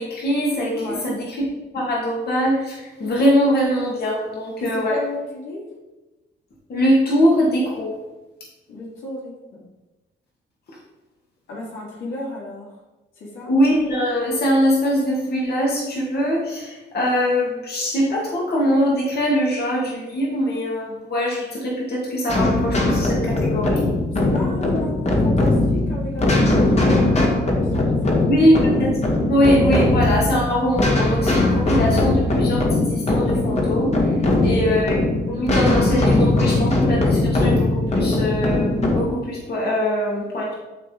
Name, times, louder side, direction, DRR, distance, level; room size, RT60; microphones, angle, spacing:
voice 1, 0.0-1.4 1.7-5.0 6.7-7.9 13.5-23.9 28.3-28.9 29.3-34.1 34.4-35.0 35.3-40.5, equal, 55° left, -4 dB, 2.2 m, -22 dB
voice 2, 0.8-1.2 4.6-5.6 8.7-9.6 11.5-12.8 13.2-13.5 24.2-28.7 34.3-34.8, left 2 dB, 85° left, -4 dB, 2.9 m, -33 dB
sound 1, 22.3-39.0, left 2 dB, 35° left, 1.8 m, -20 dB
11.5 x 3.8 x 4.6 m, 1.1 s
cardioid pair, 90°, 20 cm